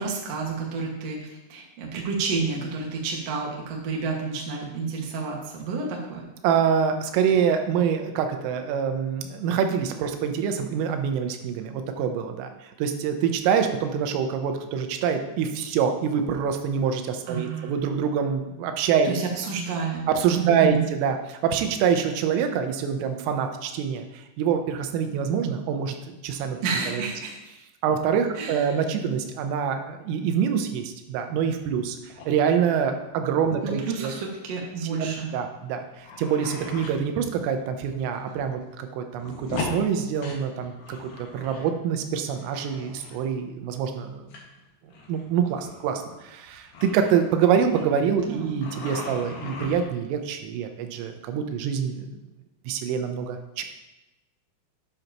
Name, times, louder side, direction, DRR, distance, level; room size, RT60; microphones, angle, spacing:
voice 1, 0.0-6.3 17.3-17.8 19.0-20.1 20.3-20.8 26.6-27.4 28.3-28.8 33.6-35.3 48.3-48.6, right 4 dB, 55° right, -2 dB, 1.8 m, -30 dB
voice 2, 6.4-19.1 20.1-26.0 26.2-26.6 26.9-27.0 27.8-34.1 34.9-44.3 45.1-52.1 52.7-53.6, right 7 dB, 85° right, 6 dB, 3.5 m, -25 dB
sound 1, 31.4-31.8 32.1-32.3 33.1-33.4 33.8-33.9 34.1-34.3 35.1-35.2 35.7-37.0 37.6-37.7 38.1-38.6 38.8-41.7 41.9-43.2 44.3-44.4 44.9-48.3 48.6-50.1 50.9-51.2, left 3 dB, 60° left, 3.2 m, -39 dB
12.0 x 9.6 x 3.0 m, 1.0 s
omnidirectional pair, 5.7 m